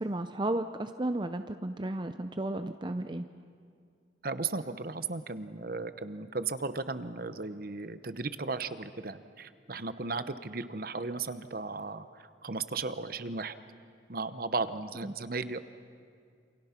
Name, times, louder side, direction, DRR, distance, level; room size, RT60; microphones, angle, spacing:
voice 1, 0.0-3.3 15.0-15.2, right 1 dB, 25° right, 8 dB, 0.6 m, -33 dB
voice 2, 4.2-13.5 14.1-15.6, right 3 dB, 50° right, 12 dB, 0.9 m, -35 dB
28.5 x 27.0 x 5.9 m, 2.2 s
head